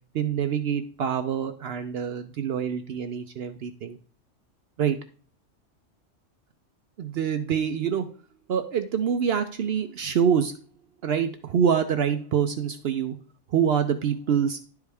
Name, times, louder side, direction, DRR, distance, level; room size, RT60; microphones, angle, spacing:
voice 1, 0.1-4.0 4.8-5.0 7.0-8.1 8.5-10.5 11.0-13.2 13.5-14.6, right 8 dB, 65° right, 8 dB, 0.7 m, -25 dB
10.5 x 4.8 x 3.4 m, 0.40 s
omnidirectional pair, 1.2 m